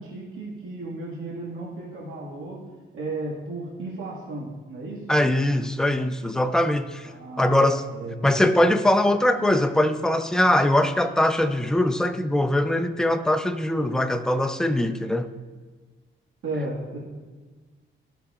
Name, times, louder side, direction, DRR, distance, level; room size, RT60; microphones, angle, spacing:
voice 1, 0.0-2.6 2.9-5.0 7.0-7.6 7.9-8.2 16.4-17.0, right 2 dB, 85° right, -4 dB, 1.8 m, -34 dB
voice 2, 5.1-7.1 7.4-7.8 8.2-15.3, left 1 dB, 5° left, 9 dB, 0.4 m, -22 dB
14.5 x 5.8 x 2.4 m, 1.3 s
cardioid pair, 125°, 21 cm